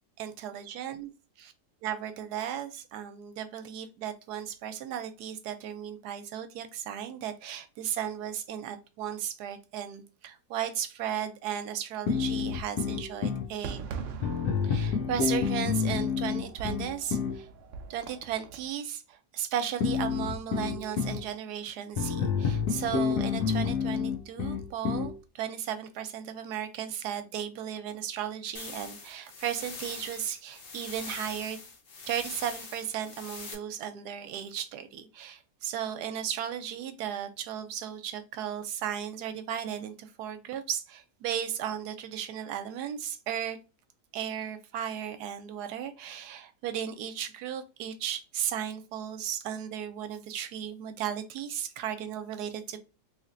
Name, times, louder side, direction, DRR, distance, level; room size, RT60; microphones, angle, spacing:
voice 1, 0.2-1.1 1.8-13.8 14.6-17.5 17.9-31.6 32.1-43.6 44.1-52.8, right 9 dB, 85° right, 1.2 m, -35 dB
sound 1, 12.1-13.5 14.2-17.4 19.8-21.2 22.0-25.1, left 6 dB, 75° left, 1.3 m, -29 dB
Fireworks, 13.6-18.7, right 6 dB, 65° right, 0.8 m, -43 dB
sound 2, 28.5-33.5, left 4 dB, 45° left, 0.8 m, -43 dB
3.3 x 3.1 x 2.5 m
omnidirectional pair, 1.7 m